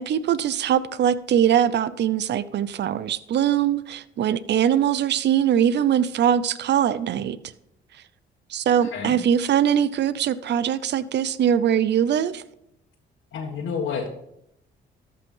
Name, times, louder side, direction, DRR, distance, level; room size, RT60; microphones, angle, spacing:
voice 1, 0.0-7.4 8.5-12.4, right 9 dB, 60° right, 0.7 m, -22 dB
voice 2, 8.8-9.2 13.3-14.1, left 6 dB, 80° left, 1.7 m, -29 dB
13.5 x 5.6 x 5.6 m
cardioid pair, 90°, 20 cm